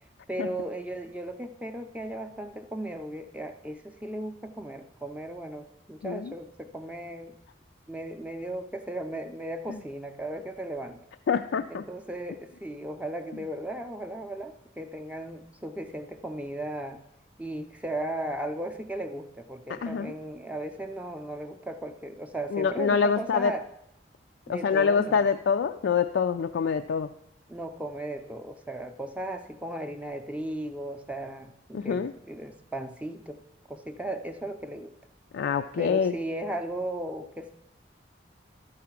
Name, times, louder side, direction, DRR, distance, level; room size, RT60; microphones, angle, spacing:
voice 1, 0.3-7.4 7.9-11.0 11.7-17.0 17.4-23.7 24.5-25.3 27.5-33.4 33.7-34.9 35.8-37.5, right 1 dB, 5° right, 6 dB, 0.4 m, -36 dB
voice 2, 11.3-11.8 19.7-20.1 22.5-23.5 24.5-27.1 31.7-32.1 35.3-36.1, left 6 dB, 85° left, 7 dB, 0.3 m, -25 dB
12.0 x 4.8 x 5.8 m, 0.81 s
head